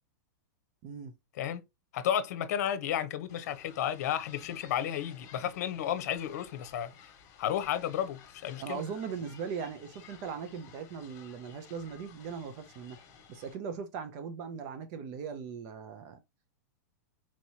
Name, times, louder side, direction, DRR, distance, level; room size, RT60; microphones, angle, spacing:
voice 1, 0.8-1.1 8.6-13.0 13.3-16.2, right 6 dB, 40° right, 0.6 m, -39 dB
voice 2, 1.9-6.9 7.4-8.8, left 10 dB, 60° left, 0.8 m, -32 dB
sound 1, 3.3-13.6, left 7 dB, 35° left, 1.5 m, -55 dB
4.4 x 3.0 x 2.8 m
supercardioid pair, 155°, 10 cm